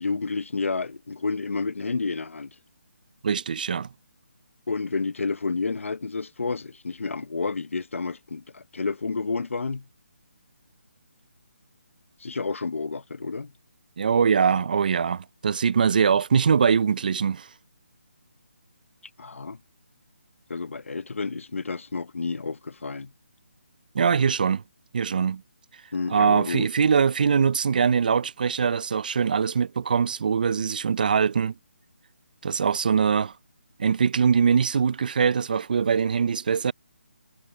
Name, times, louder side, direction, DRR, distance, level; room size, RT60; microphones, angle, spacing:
voice 1, 0.0-2.5 4.7-9.9 12.2-13.5 19.2-19.6 20.5-23.1 25.9-26.7, left 4 dB, 80° left, 0.9 m, -30 dB
voice 2, 3.2-3.9 14.0-17.5 23.9-24.6 24.9-25.4 26.1-31.5 32.4-33.3 33.8-36.7, right 6 dB, 40° right, 0.4 m, -22 dB
hypercardioid pair, 170°, 7 cm